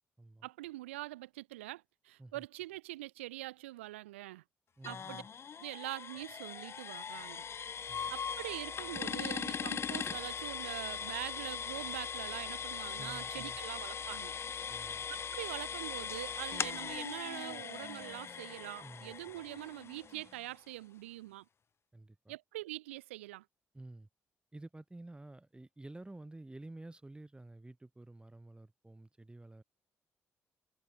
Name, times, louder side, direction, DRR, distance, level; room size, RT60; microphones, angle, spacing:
voice 1, 0.4-4.4 4.8-5.2 5.6-7.5 8.1-14.3 15.1-21.5 22.3-23.4, right 17 dB, 80° right, 0.4 m, -44 dB
sound 1, 4.8-20.5, left 7 dB, 40° left, 0.5 m, -40 dB
voice 2, 4.8-5.3 7.9-8.1 13.0-13.6 14.7-15.1 18.8-19.1 21.9-22.4 23.7-24.1 24.5-29.6, right 2 dB, 15° right, 1.3 m, -51 dB
figure-of-eight pair, 40°, 7 cm